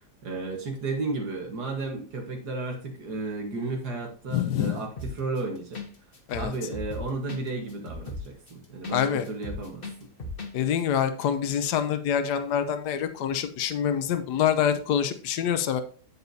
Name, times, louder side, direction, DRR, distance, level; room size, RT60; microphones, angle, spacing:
voice 1, 0.2-5.9 6.3-10.1, right 3 dB, 75° right, 1 dB, 2.0 m, -33 dB
voice 2, 4.3-4.8 6.3-6.5 8.9-9.2 10.5-15.8, left 9 dB, 80° left, 9 dB, 1.4 m, -26 dB
sound 1, 5.0-5.4 5.7-5.9 6.1-9.0 9.2-10.5 10.8-10.9, left 2 dB, 35° left, 1.3 m, -36 dB
8.5 x 8.1 x 2.7 m, 0.40 s
omnidirectional pair, 1.8 m